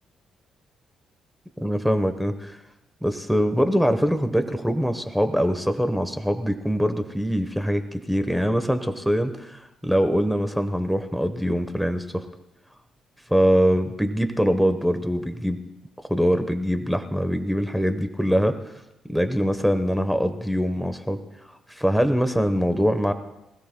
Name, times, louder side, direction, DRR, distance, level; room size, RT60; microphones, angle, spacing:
voice 1, 1.6-2.6 3.0-12.3 13.3-15.6 16.0-18.7 19.1-21.2 21.7-23.1, equal, ahead, 8 dB, 1.0 m, -23 dB
24.5 x 16.0 x 2.2 m, 0.92 s
cardioid pair, 90°, 0 cm